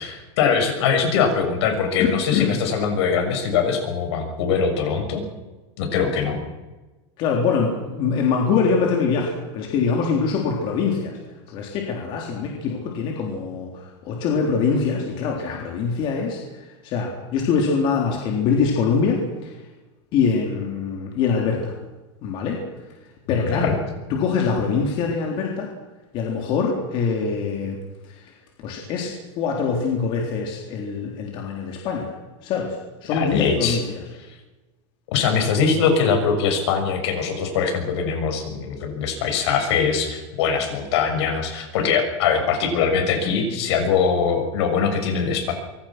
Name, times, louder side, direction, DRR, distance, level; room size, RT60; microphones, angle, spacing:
voice 1, 0.0-5.2 5.8-6.4 23.3-23.8 33.1-33.8 35.1-45.5, left 6 dB, 60° left, 5 dB, 6.7 m, -22 dB
voice 2, 2.0-2.6 7.2-11.2 11.5-19.5 20.1-21.7 22.2-22.6 23.3-23.7 24.1-25.7 26.1-27.8 28.0-28.3 28.6-32.1 32.4-32.8 33.0-34.0, left 5 dB, 35° left, 0 dB, 3.8 m, -24 dB
25.5 x 23.0 x 6.1 m, 1.2 s
supercardioid pair, 175°, 15 cm